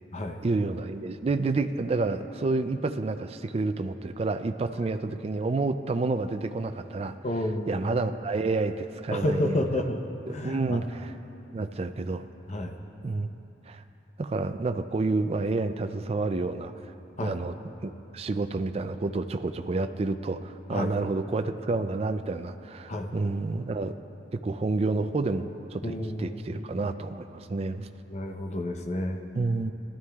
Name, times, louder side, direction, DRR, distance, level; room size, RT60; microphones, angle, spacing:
voice 1, 0.4-7.1 7.7-9.9 10.3-11.1 11.5-12.3 13.0-13.3 13.7-13.8 14.2-16.7 17.2-17.5 17.8-23.9 24.3-27.9 29.4-29.7, right 3 dB, 35° right, 9 dB, 0.4 m, -29 dB
voice 2, 7.2-7.7 9.1-10.0 10.3-10.8 12.5-12.8 17.2-17.3 20.7-20.9 22.9-23.1 25.8-26.5 28.1-29.2, left 1 dB, 40° left, 4 dB, 0.8 m, -30 dB
19.0 x 13.0 x 2.3 m, 2.9 s
head